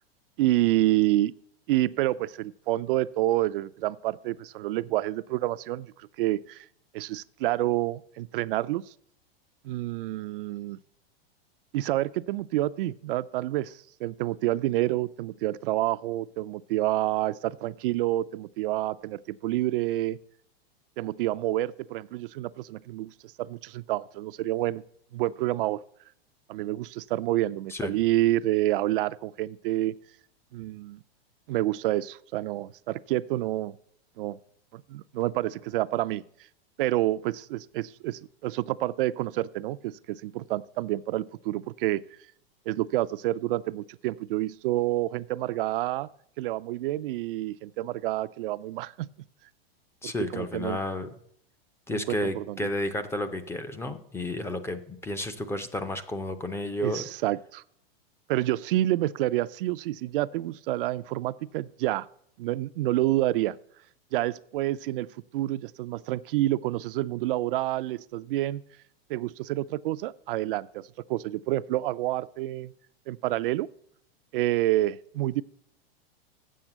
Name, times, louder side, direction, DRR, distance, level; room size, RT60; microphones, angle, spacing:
voice 1, 0.4-1.3 1.7-6.7 6.9-8.8 9.6-10.8 11.7-20.2 21.0-24.8 25.1-25.8 26.5-29.9 30.5-31.0 31.5-33.8 34.2-34.4 34.7-36.2 36.8-42.0 42.7-46.1 46.4-49.1 50.0-50.8 51.9-52.6 56.8-57.6 58.3-62.1 62.4-63.6 64.1-65.1 65.3-68.6 69.1-72.7 73.1-73.7 74.3-75.4, right 16 dB, 60° right, 14 dB, 0.4 m, -28 dB
voice 2, 50.0-51.1 51.9-57.1, left 1 dB, 10° left, 9 dB, 0.5 m, -32 dB
7.4 x 7.1 x 7.8 m, 0.67 s
supercardioid pair, 135°, 31 cm